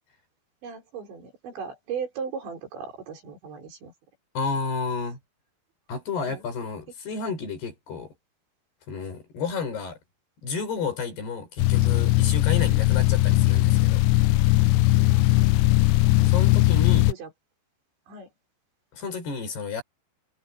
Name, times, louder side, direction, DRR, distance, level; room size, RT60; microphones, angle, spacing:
voice 1, 0.6-3.9 6.3-6.4 12.9-13.1 15.1-16.0 17.1-17.3 18.1-18.3, right 6 dB, 75° right, 7.5 m, -38 dB
voice 2, 4.4-5.2 5.9-8.1 8.9-10.0 10.4-14.0 16.3-17.1 18.9-19.8, left 5 dB, 60° left, 7.6 m, -31 dB
sound 1, 11.6-17.1, left 17 dB, 80° left, 2.8 m, -19 dB
omnidirectional pair, 5.2 m